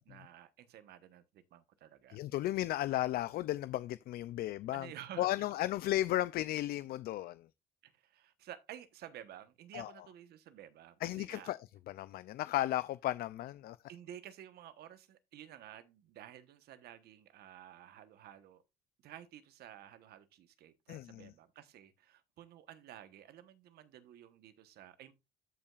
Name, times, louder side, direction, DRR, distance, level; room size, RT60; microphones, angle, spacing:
voice 1, 0.0-2.2 4.7-5.5 7.8-11.5 13.9-18.6 19.0-25.1, right 11 dB, 70° right, 1.1 m, -52 dB
voice 2, 2.1-4.9 5.2-7.5 9.7-9.9 11.0-11.6 11.9-13.8 20.9-21.3, left 14 dB, 65° left, 0.4 m, -34 dB
13.5 x 5.5 x 2.4 m
cardioid pair, 110°, 17 cm